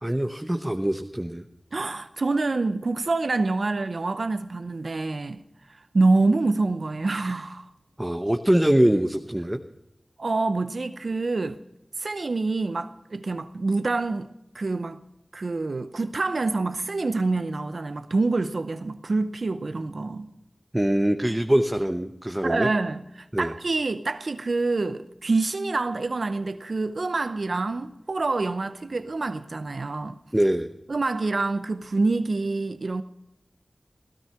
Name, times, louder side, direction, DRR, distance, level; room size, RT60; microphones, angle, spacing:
voice 1, 0.0-1.4 8.0-9.6 20.7-22.7 23.3-23.5 30.3-30.7, right 1 dB, 15° right, 1.0 m, -23 dB
voice 2, 1.7-5.4 5.7-7.7 10.2-11.6 12.0-14.3 14.5-15.0 15.3-20.3 22.4-30.2 30.9-33.0, right 3 dB, 75° right, 0.7 m, -26 dB
17.0 x 13.0 x 5.8 m
wide cardioid pair, 50°, 0 cm